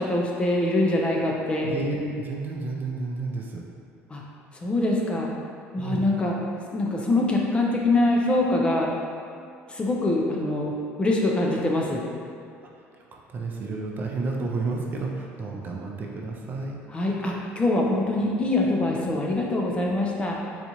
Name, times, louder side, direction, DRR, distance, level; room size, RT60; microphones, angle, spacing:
voice 1, 0.0-1.7 4.1-4.2 4.6-5.3 5.7-6.4 6.7-8.9 9.7-12.0 16.9-20.4, left 2 dB, 20° left, -2 dB, 0.5 m, -24 dB
voice 2, 1.7-3.6 5.8-6.1 13.0-16.8, right 3 dB, 40° right, 0 dB, 0.4 m, -31 dB
4.0 x 2.4 x 2.9 m, 2.5 s
cardioid pair, 110°, 5 cm